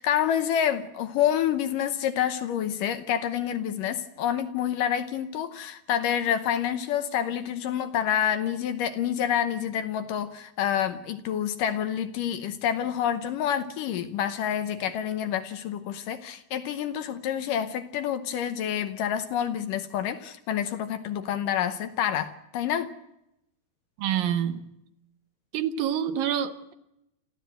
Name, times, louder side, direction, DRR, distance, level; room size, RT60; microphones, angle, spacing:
voice 1, 0.0-22.9, left 9 dB, 70° left, 9 dB, 2.3 m, -28 dB
voice 2, 24.0-24.6 25.5-26.7, right 9 dB, 75° right, 9 dB, 2.6 m, -27 dB
27.5 x 14.5 x 7.8 m, 0.85 s
omnidirectional pair, 4.3 m